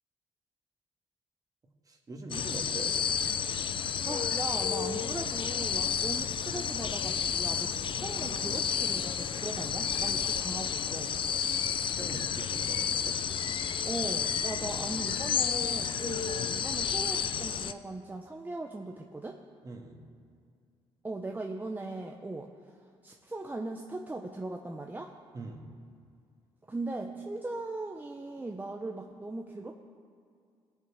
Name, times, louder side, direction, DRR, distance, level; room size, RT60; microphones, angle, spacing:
voice 1, 1.9-3.0 11.7-13.2 14.7-15.2 19.6-20.0 25.3-25.7, right 3 dB, 30° right, 2 dB, 1.7 m, -43 dB
sound 1, 2.3-17.7, left 7 dB, 50° left, 0.5 m, -31 dB
voice 2, 4.0-11.1 13.8-19.4 21.0-22.5 23.0-25.1 26.7-29.7, right 2 dB, 15° right, 2 dB, 0.7 m, -39 dB
19.5 x 7.2 x 4.8 m, 2.3 s
cardioid pair, 95°, 11 cm